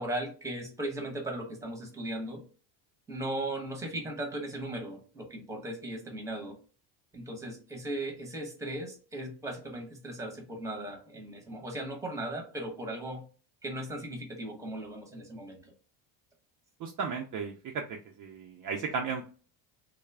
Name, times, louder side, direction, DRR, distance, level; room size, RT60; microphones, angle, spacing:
voice 1, 0.0-2.4 3.1-6.6 7.1-13.2 13.6-15.6, right 1 dB, 5° right, 2 dB, 0.8 m, -37 dB
voice 2, 16.8-19.3, right 5 dB, 40° right, 2 dB, 0.4 m, -35 dB
2.3 x 2.0 x 3.2 m, 0.39 s
supercardioid pair, 90°, 50 cm